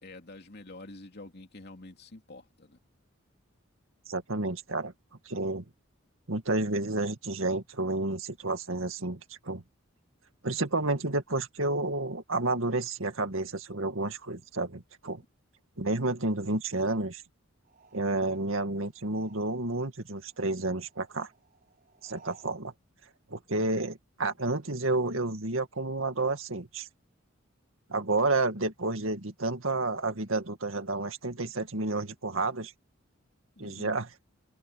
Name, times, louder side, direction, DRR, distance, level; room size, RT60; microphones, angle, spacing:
voice 1, 0.0-2.8 33.6-33.9, left 2 dB, 55° left, 2.9 m, -47 dB
voice 2, 4.1-4.9 5.3-5.6 6.3-9.2 9.4-9.6 10.4-15.2 15.8-17.2 17.9-21.3 22.0-22.7 23.3-26.9 27.9-32.7 33.6-34.1, right 2 dB, 80° right, 2.1 m, -30 dB
sound 1, 17.6-19.9 20.1-22.6, right 4 dB, 45° right, 4.9 m, -59 dB
head